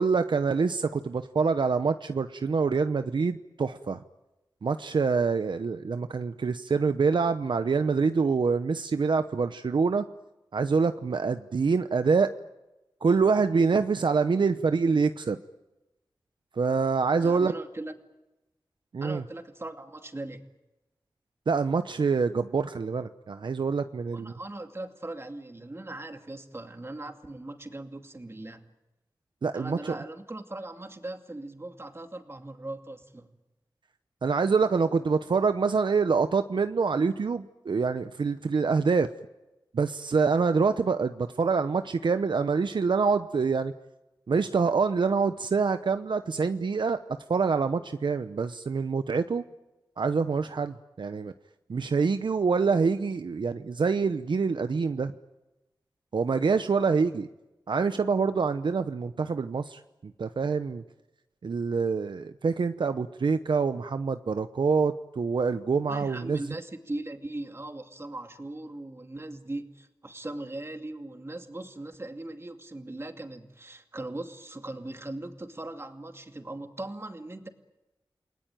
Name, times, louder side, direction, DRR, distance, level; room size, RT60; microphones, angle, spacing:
voice 1, 0.0-4.0 4.6-10.0 10.5-12.3 13.0-15.4 16.6-17.5 18.9-19.2 21.5-24.3 29.4-30.0 34.2-39.1 39.7-43.7 44.3-47.0 47.3-49.4 50.0-51.3 51.7-55.1 56.1-57.3 57.7-59.8 60.2-60.8 61.4-66.4, right 5 dB, 75° right, 9 dB, 0.8 m, -26 dB
voice 2, 17.2-17.9 19.0-20.4 24.1-28.6 29.5-33.3 65.9-77.5, right 2 dB, 30° right, 5 dB, 2.5 m, -39 dB
29.0 x 19.0 x 9.1 m, 1.0 s
cardioid pair, 55°, 8 cm